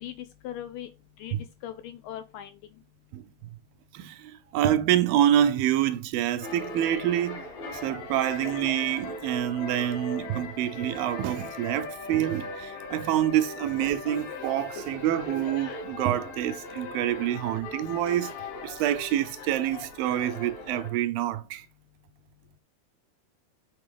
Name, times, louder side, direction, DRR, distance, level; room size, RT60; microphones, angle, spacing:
voice 1, 0.4-0.9 1.2-1.3 1.6-2.5, left 11 dB, 80° left, 2.0 m, -38 dB
voice 2, 3.9-7.4 7.7-18.3 18.6-21.7, right 11 dB, 80° right, 2.2 m, -27 dB
sound 1, 6.4-20.9, left 3 dB, 65° left, 3.3 m, -39 dB
6.7 x 3.8 x 5.0 m
omnidirectional pair, 4.3 m